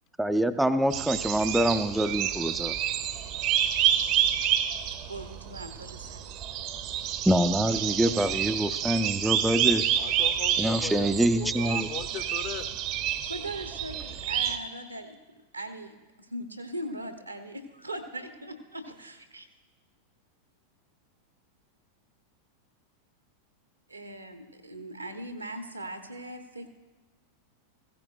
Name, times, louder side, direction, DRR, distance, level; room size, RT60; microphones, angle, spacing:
voice 1, 0.2-2.8 7.3-9.9 10.6-11.9, right 1 dB, 5° right, 9 dB, 0.4 m, -25 dB
sound 1, 0.9-14.6, right 10 dB, 40° right, 0.7 m, -29 dB
voice 2, 4.9-6.4 13.2-15.2 15.5-16.0 16.3-19.5 23.9-26.7, right 1 dB, 85° right, 7 dB, 1.1 m, -40 dB
voice 3, 10.0-12.8, left 9 dB, 40° left, 8 dB, 0.9 m, -38 dB
15.5 x 14.0 x 2.6 m, 1.2 s
figure-of-eight pair, 90°, 0 cm